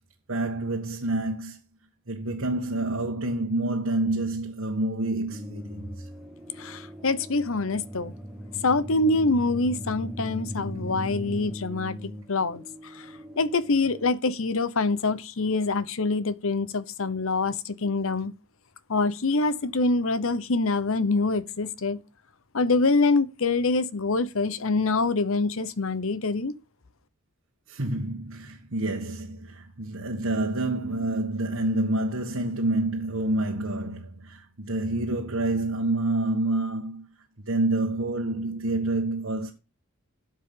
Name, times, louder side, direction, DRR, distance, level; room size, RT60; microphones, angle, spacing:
voice 1, 0.3-1.6 2.1-6.1 27.7-37.0 37.5-39.5, right 2 dB, 70° right, 1.7 m, -28 dB
sound 1, 5.3-14.1, equal, 5° right, 1.3 m, -39 dB
voice 2, 6.6-8.1 8.6-13.1 13.4-18.3 18.9-22.0 22.5-26.6, left 3 dB, 70° left, 0.9 m, -25 dB
12.0 x 7.5 x 3.8 m
head